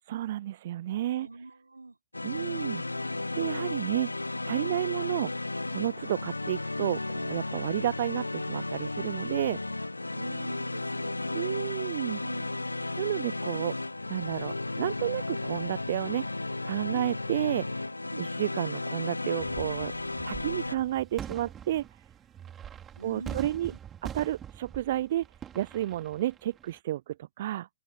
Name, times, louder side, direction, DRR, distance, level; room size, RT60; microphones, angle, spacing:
voice 1, 0.1-1.3 2.2-9.6 11.3-12.2 13.0-13.8 14.1-17.9 18.2-19.9 20.2-21.9 23.0-23.7 24.0-25.3 25.5-27.7, right 13 dB, 50° right, 0.3 m, -31 dB
voice 2, 1.1-2.0 4.6-4.8 10.1-11.8 12.2-12.8 16.9-17.1 18.1-18.3 23.0-23.8, right 3 dB, 85° right, 3.4 m, -44 dB
sound 1, 2.1-20.8, left 2 dB, 85° left, 0.7 m, -34 dB
sound 2, 19.4-26.8, right 9 dB, 20° right, 4.3 m, -44 dB
open air
figure-of-eight pair, 110°, 0 cm